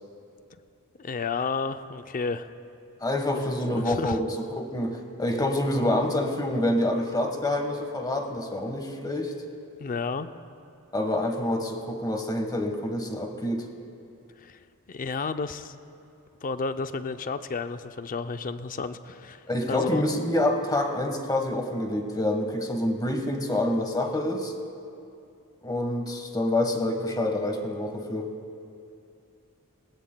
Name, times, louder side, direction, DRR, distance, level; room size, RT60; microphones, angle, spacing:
voice 1, 1.0-2.5 3.3-3.4 3.8-4.2 9.8-10.3 14.4-14.6 14.9-15.8 16.4-20.0, left 4 dB, 40° left, 10 dB, 0.5 m, -31 dB
voice 2, 3.0-4.3 4.5-9.3 10.9-13.7 19.5-24.5 25.6-28.3, left 1 dB, 20° left, 3 dB, 1.3 m, -27 dB
22.5 x 15.5 x 2.2 m, 2.5 s
head